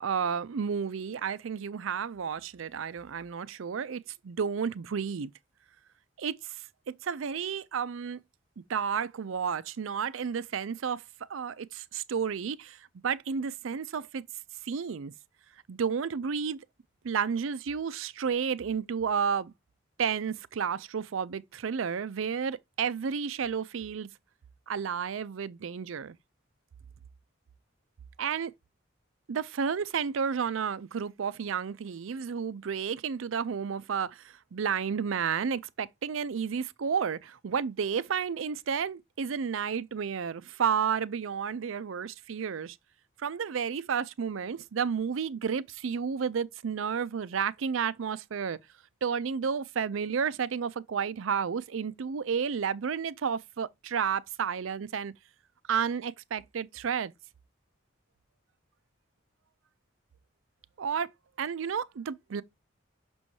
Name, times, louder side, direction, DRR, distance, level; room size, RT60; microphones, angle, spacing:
voice 1, 0.0-5.3 6.2-6.5 7.0-8.2 8.7-11.0 11.3-12.8 13.0-14.2 14.6-15.1 15.7-16.6 17.0-19.5 20.0-24.1 24.7-26.1 28.2-28.5 29.3-42.8 43.2-48.6 49.0-55.1 55.7-57.1 60.8-61.1 61.4-62.4, right 6 dB, 80° right, 0.5 m, -31 dB
6.2 x 6.1 x 2.7 m
head